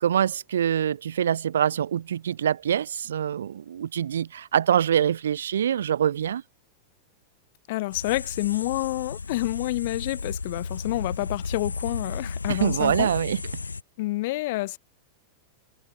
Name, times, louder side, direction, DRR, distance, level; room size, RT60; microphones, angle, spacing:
voice 1, 0.0-6.4 12.5-13.4, right 9 dB, 65° right, 0.6 m, -24 dB
voice 2, 7.7-13.1 14.0-14.8, left 19 dB, 50° left, 1.5 m, -28 dB
sound 1, 7.9-13.8, left 4 dB, 75° left, 0.6 m, -34 dB
figure-of-eight pair, 90°, 0 cm